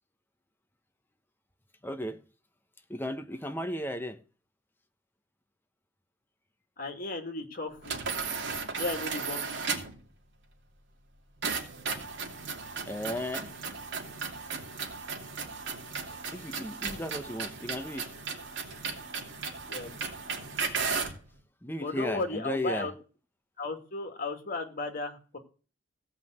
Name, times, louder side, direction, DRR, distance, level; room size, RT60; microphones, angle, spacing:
voice 1, 1.8-2.2 2.9-4.2 12.9-13.5 16.0-18.1 21.6-22.9, left 1 dB, 10° left, 1.2 m, -35 dB
voice 2, 6.8-8.0 8.8-9.8 19.7-19.9 21.8-22.9 23.6-25.4, left 3 dB, 50° left, 2.5 m, -35 dB
sound 1, 7.8-10.0 11.4-21.2, right 5 dB, 65° right, 2.8 m, -35 dB
16.5 x 5.7 x 8.0 m
head